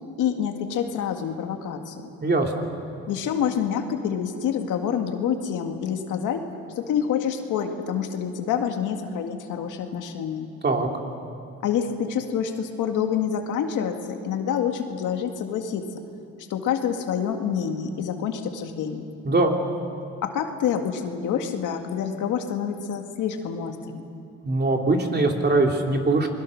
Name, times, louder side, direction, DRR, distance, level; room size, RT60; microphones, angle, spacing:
voice 1, 0.2-2.1 3.1-6.4 6.8-10.5 11.6-15.8 16.5-19.1 20.2-24.1, left 8 dB, 85° left, 5 dB, 2.0 m, -27 dB
voice 2, 2.2-2.7 10.6-10.9 19.2-19.6 24.4-26.3, right 2 dB, 35° right, 2 dB, 3.0 m, -21 dB
28.5 x 21.0 x 6.5 m, 2.6 s
cardioid pair, 90°, 30 cm